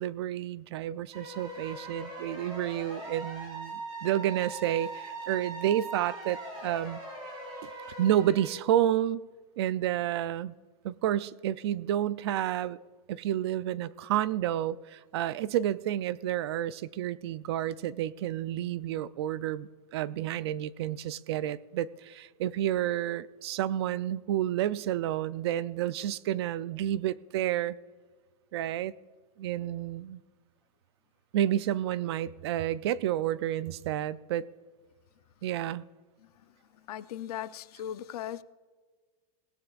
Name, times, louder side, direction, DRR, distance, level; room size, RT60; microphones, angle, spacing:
voice 1, 0.0-7.0 8.0-9.2 9.6-10.5 10.8-12.8 13.1-27.8 28.5-28.9 29.4-30.2 31.3-34.5 35.4-35.8, right 11 dB, 45° right, 0.4 m, -30 dB
sound 1, 1.1-8.5, right 2 dB, 25° right, 4.0 m, -41 dB
voice 2, 36.9-38.4, left 11 dB, 75° left, 0.6 m, -38 dB
18.5 x 16.5 x 2.4 m
supercardioid pair, 180°, 20 cm